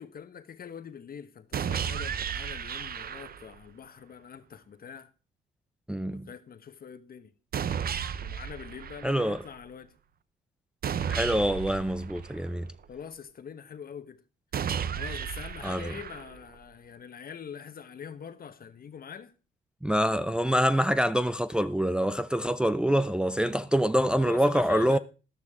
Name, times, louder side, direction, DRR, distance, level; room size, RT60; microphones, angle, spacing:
voice 1, 0.0-5.1 6.1-7.3 8.2-9.9 12.9-14.2 15.0-19.3 24.2-25.0, left 7 dB, 50° left, 1.3 m, -44 dB
sound 1, 1.5-3.6 7.5-9.5 10.8-12.8 14.5-16.5, right 8 dB, 50° right, 0.8 m, -34 dB
voice 2, 5.9-6.3 9.0-9.4 11.1-12.7 15.6-15.9 19.8-25.0, equal, 5° right, 0.5 m, -25 dB
13.5 x 12.0 x 3.6 m
cardioid pair, 90°, 20 cm